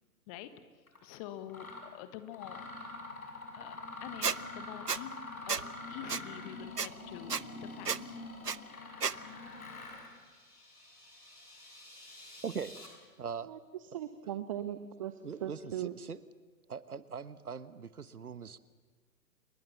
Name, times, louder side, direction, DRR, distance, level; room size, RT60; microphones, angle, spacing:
Mechanisms, 0.9-1.0 1.5-1.9 2.3-10.1, left 3 dB, 65° left, 6.3 m, -45 dB
voice 1, 1.0-2.6 3.5-5.2 5.5-5.6 5.9-8.2 12.0-12.1, left 11 dB, 20° left, 11 dB, 1.4 m, -46 dB
Squeak, 4.2-4.4 4.9-5.0 5.5-5.6 6.1-6.2 6.8-6.9 7.3-7.4 7.9-8.0 8.4-8.6 9.0-9.1, right 6 dB, 90° right, 0.8 m, -31 dB
sound 1, 8.8-12.9, left 1 dB, 90° left, 7.9 m, -55 dB
voice 2, 12.4-12.8 13.2-13.5 15.2-16.2 16.7-18.6, right 6 dB, 70° right, 15 dB, 1.2 m, -41 dB
voice 3, 13.9-15.9, right 11 dB, 20° right, 11 dB, 0.7 m, -39 dB
28.5 x 21.5 x 7.2 m, 1.4 s
figure-of-eight pair, 125°, 46 cm